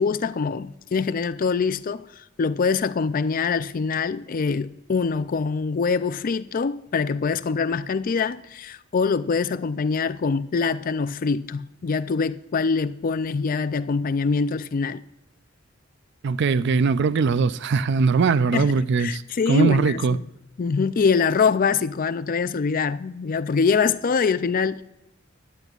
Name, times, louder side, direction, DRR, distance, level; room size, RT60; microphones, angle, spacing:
voice 1, 0.0-15.0 18.5-18.7 19.0-20.3 20.6-24.8, left 5 dB, 45° left, 0.4 m, -24 dB
voice 2, 16.2-20.2, right 5 dB, 55° right, 0.4 m, -21 dB
16.0 x 10.5 x 2.4 m
head